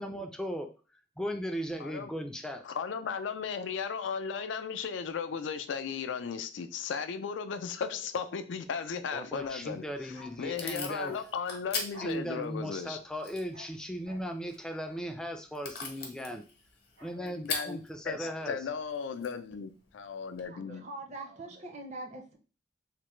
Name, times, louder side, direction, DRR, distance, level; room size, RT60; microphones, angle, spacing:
voice 1, 0.0-0.7 1.2-2.6 9.1-11.2 12.0-16.4 17.0-18.6, equal, 5° left, 4 dB, 0.4 m, -37 dB
voice 2, 1.8-2.1 2.6-13.0 17.2-17.8 18.0-20.9, left 6 dB, 75° left, 10 dB, 0.4 m, -36 dB
Bark, 9.3-16.3 16.6-18.5 18.8-18.9, left 3 dB, 80° right, 0.9 m, -54 dB
Packing tape duct tape / Tearing, 9.7-20.5, left 4 dB, 55° left, 0.8 m, -43 dB
voice 3, 20.5-22.4, right 2 dB, 40° right, 4 dB, 0.6 m, -43 dB
3.3 x 2.1 x 3.0 m, 0.34 s
head